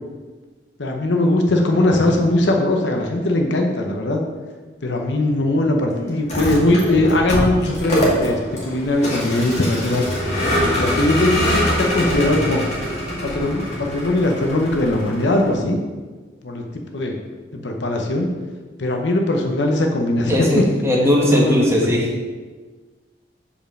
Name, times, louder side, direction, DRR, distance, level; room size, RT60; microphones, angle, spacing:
voice 1, 0.8-4.2 4.8-8.4 8.7-10.0 10.5-12.6 13.2-15.8 16.4-17.2 17.5-18.3 18.8-20.7 21.2-21.7, left 1 dB, 70° left, 2 dB, 0.8 m, -20 dB
Vehicle, 6.1-15.5, equal, 40° left, 2.2 m, -24 dB
voice 2, 20.3-22.0, left 1 dB, 15° right, -3 dB, 1.5 m, -18 dB
5.1 x 5.0 x 6.3 m, 1.4 s
head